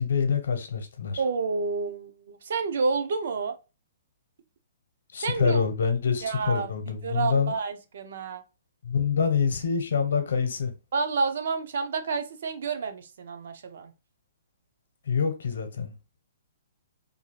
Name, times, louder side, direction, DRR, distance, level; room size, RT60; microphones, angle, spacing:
voice 1, 0.0-1.2 5.1-7.5 8.8-10.7 15.1-15.9, left 6 dB, 75° left, 0.7 m, -26 dB
voice 2, 1.2-3.6 5.2-5.6 6.2-8.4 10.9-13.9, right 4 dB, 60° right, 0.5 m, -29 dB
2.6 x 2.4 x 3.0 m
hypercardioid pair, 170°, 0 cm